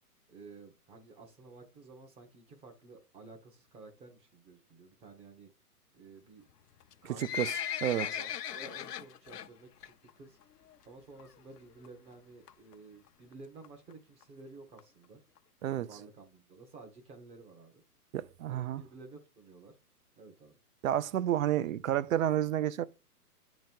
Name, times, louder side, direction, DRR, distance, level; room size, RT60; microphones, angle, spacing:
voice 1, 0.3-5.5 5.9-6.5 7.0-7.4 7.9-10.4 10.8-15.2 15.7-17.8 18.5-19.7 20.2-20.6, right 3 dB, 15° right, 0.7 m, -53 dB
Livestock farm animals working animals, 6.8-9.5 9.8-10.1 10.4-10.5 11.2-11.3 11.6-11.7 11.8-11.9 12.5-12.7 13.3-13.4 13.6-13.7 13.9-14.0 14.2-14.3 14.8-14.9 15.4-15.5 15.9-16.0, left 9 dB, 80° left, 0.7 m, -37 dB
voice 2, 7.2-7.5 7.8-8.1 15.6-15.9 18.1-18.8 20.8-22.8, right 11 dB, 60° right, 0.5 m, -30 dB
9.0 x 3.0 x 5.2 m
hypercardioid pair, 135°, 47 cm